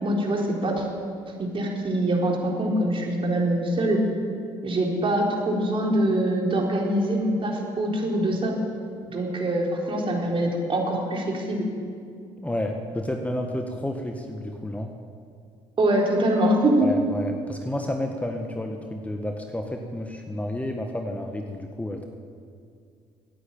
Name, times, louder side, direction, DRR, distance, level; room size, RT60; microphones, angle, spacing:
voice 1, 0.0-0.9 1.4-4.0 4.6-8.5 9.1-11.6 15.8-16.9, right 1 dB, 40° right, -1 dB, 4.2 m, -24 dB
voice 2, 12.4-14.9 16.8-22.1, left 1 dB, 10° left, 3 dB, 1.6 m, -31 dB
16.0 x 9.9 x 8.9 m, 2.2 s
hypercardioid pair, 60°, 13 cm